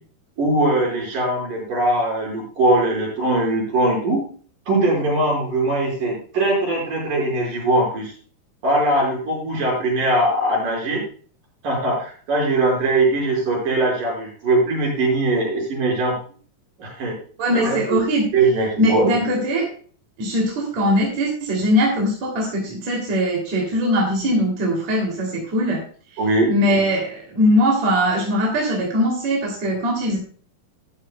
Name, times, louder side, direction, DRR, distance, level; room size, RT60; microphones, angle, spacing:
voice 1, 0.4-4.2 4.7-8.1 8.6-11.0 11.6-16.2 16.8-17.1 17.5-18.0 18.3-19.2 26.2-26.5 26.8-26.9, right 2 dB, 70° right, -2 dB, 6.8 m, -21 dB
voice 2, 17.4-18.3 18.8-19.7 20.2-25.8 26.5-30.2, equal, 55° right, -1 dB, 4.0 m, -21 dB
13.0 x 12.5 x 2.2 m, 0.42 s
omnidirectional pair, 4.0 m